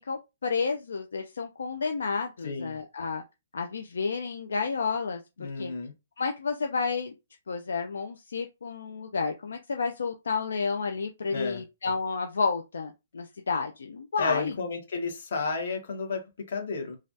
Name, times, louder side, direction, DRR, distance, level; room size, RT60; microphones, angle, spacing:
voice 1, 0.0-3.2 3.5-5.7 6.2-7.1 7.5-14.5, left 4 dB, 85° left, 0.4 m, -31 dB
voice 2, 2.4-2.8 5.4-5.9 11.3-11.6 14.2-17.0, left 4 dB, 65° left, 1.2 m, -32 dB
3.2 x 2.3 x 2.6 m
hypercardioid pair, 155°, 0 cm